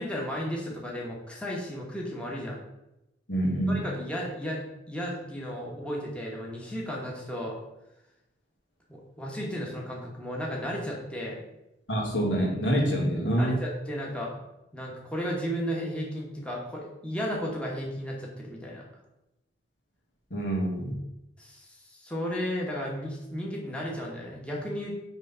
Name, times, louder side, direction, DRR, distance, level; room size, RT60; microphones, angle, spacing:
voice 1, 0.0-2.6 3.7-7.6 8.9-11.4 13.4-14.4 14.7-18.8 21.4-24.9, equal, 5° left, -3 dB, 1.1 m, -34 dB
voice 2, 3.3-3.9 11.9-13.6 20.3-21.0, right 1 dB, 80° left, -1 dB, 1.8 m, -26 dB
6.2 x 3.2 x 5.5 m, 0.93 s
head